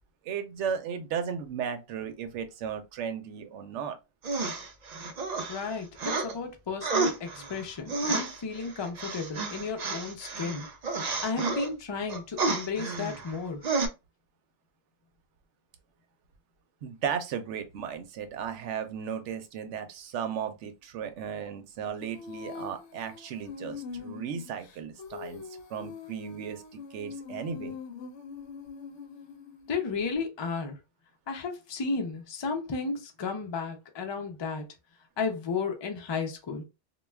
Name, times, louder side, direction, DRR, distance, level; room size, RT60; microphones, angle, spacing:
voice 1, 0.2-4.0 16.8-25.4 25.7-27.8, right 7 dB, 80° right, 0.9 m, -35 dB
sound 1, 4.2-6.3 6.8-11.7 12.1-13.4 13.6-13.9, right 3 dB, 55° right, 0.5 m, -31 dB
voice 2, 5.5-10.7 11.2-13.6 29.7-30.8 31.3-34.7 35.2-36.6, left 4 dB, 45° left, 0.3 m, -33 dB
Female singing, 22.0-29.7, left 5 dB, 75° left, 0.9 m, -43 dB
2.3 x 2.2 x 3.1 m
omnidirectional pair, 1.2 m